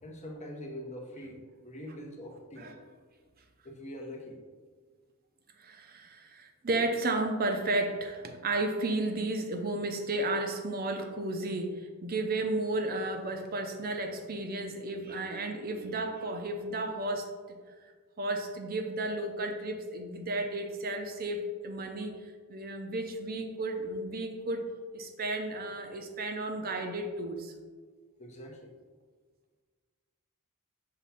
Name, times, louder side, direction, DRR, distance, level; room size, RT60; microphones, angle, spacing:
voice 1, 0.0-2.8 3.6-4.4 28.2-28.8, left 1 dB, 30° left, 1 dB, 0.8 m, -43 dB
voice 2, 5.6-17.6 18.2-22.2 22.5-24.6 24.9-27.5, right 2 dB, 45° right, 5 dB, 0.6 m, -33 dB
5.8 x 3.0 x 5.6 m, 1.5 s
head